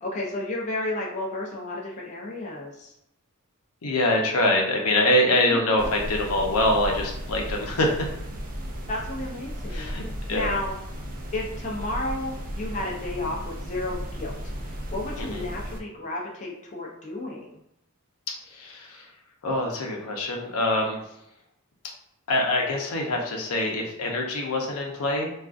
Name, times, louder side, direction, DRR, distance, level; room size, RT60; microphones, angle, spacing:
voice 1, 0.0-2.9 8.9-10.8 11.3-14.4 14.6-17.6, left 2 dB, 35° left, -3 dB, 0.5 m, -32 dB
voice 2, 3.8-8.1 9.7-10.0 10.3-10.5 15.2-15.4 18.5-19.1 19.4-21.1 22.3-25.3, left 1 dB, 85° left, 1 dB, 0.6 m, -24 dB
sound 1, 5.8-15.8, equal, 40° right, 0.5 m, -35 dB
3.6 x 2.4 x 2.4 m, 0.80 s
head